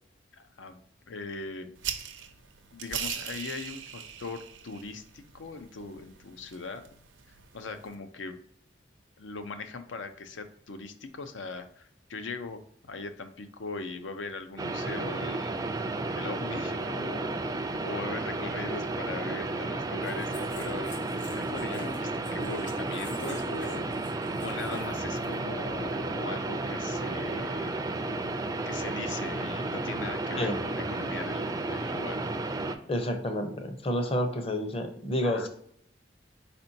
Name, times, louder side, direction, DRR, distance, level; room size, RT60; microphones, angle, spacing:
voice 1, 0.3-0.8 1.1-1.7 2.7-6.8 7.3-8.4 9.2-15.5 16.1-17.3 17.8-23.9 24.4-27.7 28.6-32.2 35.2-35.5, left 3 dB, 90° left, 9 dB, 0.6 m, -40 dB
sound 1, 1.8-7.9, right 9 dB, 85° right, 0.6 m, -41 dB
sound 2, 14.6-32.8, right 2 dB, 20° right, 0.3 m, -32 dB
sound 3, 20.0-26.2, left 2 dB, 70° left, 1.2 m, -49 dB
voice 2, 32.9-35.5, left 1 dB, 30° left, 6 dB, 0.6 m, -29 dB
4.3 x 4.3 x 2.7 m, 0.64 s
head